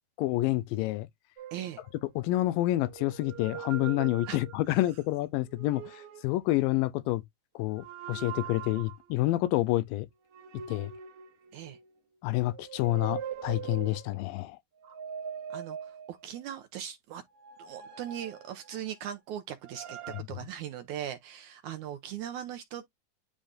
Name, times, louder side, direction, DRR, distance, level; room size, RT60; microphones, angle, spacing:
voice 1, 0.2-1.1 2.2-7.2 7.6-10.1 10.7-10.9 12.2-14.6, left 17 dB, 85° left, 2.3 m, -28 dB
sound 1, 1.4-2.3 2.8-4.8 5.4-6.4 7.7-9.1 10.3-12.0 12.5-14.2 14.8-16.4 17.3-19.1 19.6-20.2, right 8 dB, 60° right, 1.6 m, -42 dB
voice 2, 1.5-1.8 4.3-4.4 4.7-4.8 11.5-11.8 14.8-15.0 15.5-17.2 17.6-20.0 20.3-22.8, right 10 dB, 75° right, 1.8 m, -39 dB
10.0 x 3.6 x 2.6 m
omnidirectional pair, 4.0 m